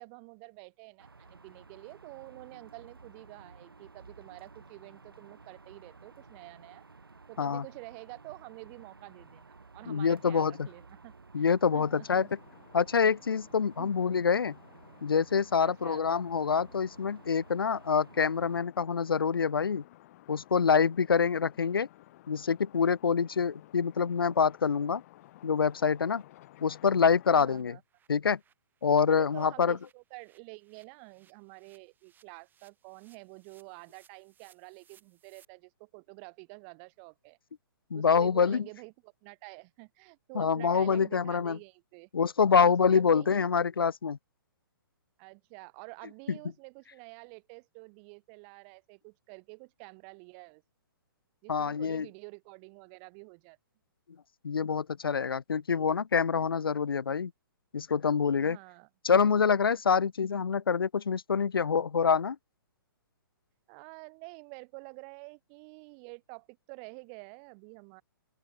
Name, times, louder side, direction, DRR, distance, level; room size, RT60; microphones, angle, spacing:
voice 1, 0.0-6.9 7.3-12.3 13.8-13.9 15.6-16.1 27.4-27.8 29.1-37.4 37.9-42.1 42.5-43.5 45.2-50.6 51.4-53.6 58.4-58.9 63.7-68.0, right 40 dB or more, 35° right, 3.7 m, -48 dB
sound 1, 1.0-18.6, right 4 dB, 85° right, 5.4 m, -54 dB
voice 2, 9.9-10.7 11.3-12.3 12.7-14.6 15.0-19.8 20.3-21.9 22.3-25.0 25.4-26.2 26.6-27.8 28.1-28.4 28.8-29.8 37.9-38.6 40.4-41.6 42.1-44.2 51.5-52.1 54.4-57.3 57.7-58.6 59.0-62.4, left 6 dB, 90° left, 0.4 m, -26 dB
sound 2, 11.6-27.4, left 16 dB, 45° left, 2.7 m, -56 dB
sound 3, 22.9-23.0 23.4-23.5 23.8-23.9 24.3-24.4 24.7-24.8 25.2-25.3 25.6-35.5, right 8 dB, 15° right, 6.4 m, -68 dB
open air
figure-of-eight pair, 125°, 12 cm